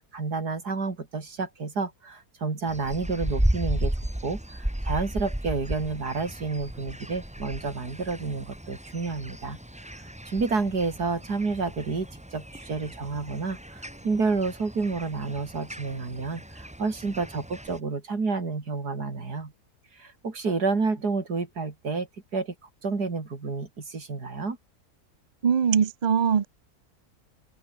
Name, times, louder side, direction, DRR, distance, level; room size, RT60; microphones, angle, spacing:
voice 1, 0.1-4.0 4.2-19.5 20.0-22.1 22.3-22.5 22.8-24.6, right 4 dB, 85° right, 3.9 m, -30 dB
sound 1, 2.7-17.8, right 1 dB, 5° right, 1.4 m, -34 dB
voice 2, 25.4-26.5, right 7 dB, 40° right, 0.6 m, -22 dB
omnidirectional pair, 1.7 m